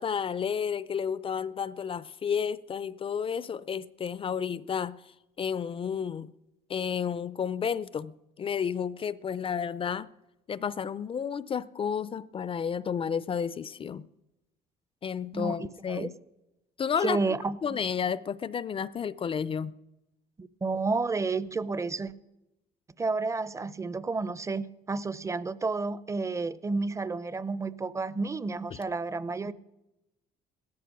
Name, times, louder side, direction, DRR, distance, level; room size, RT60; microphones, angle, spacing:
voice 1, 0.0-5.0 5.4-6.3 6.7-10.1 10.5-14.1 15.0-16.1 16.8-17.4 17.6-19.7 28.7-28.8, left 7 dB, 30° left, 0.4 m, -31 dB
voice 2, 15.3-16.1 17.0-17.6 20.4-22.1 23.0-29.5, right 3 dB, 20° right, 0.6 m, -31 dB
16.5 x 13.5 x 6.0 m
cardioid pair, 110°, 17 cm